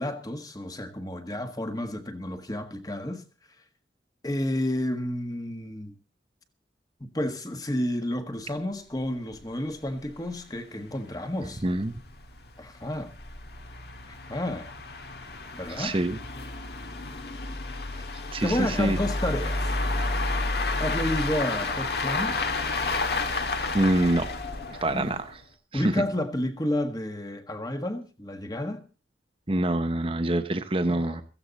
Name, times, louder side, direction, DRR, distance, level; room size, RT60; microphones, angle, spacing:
voice 1, 0.0-3.2 4.2-6.0 7.0-11.6 12.6-13.1 14.1-14.7 15.5-16.0 18.4-19.7 20.8-22.4 24.9-25.2 25.7-28.9 30.9-31.2, left 1 dB, 20° left, 1.5 m, -31 dB
sound 1, 9.0-9.1 9.3-9.4 9.9-10.0 10.3-10.4 11.0-25.4, left 3 dB, 55° left, 1.7 m, -31 dB
voice 2, 11.6-11.9 15.7-16.2 18.3-19.0 23.7-24.3 24.8-25.2 25.7-25.9 29.5-31.2, right 1 dB, 30° right, 0.9 m, -25 dB
16.5 x 15.0 x 4.1 m
head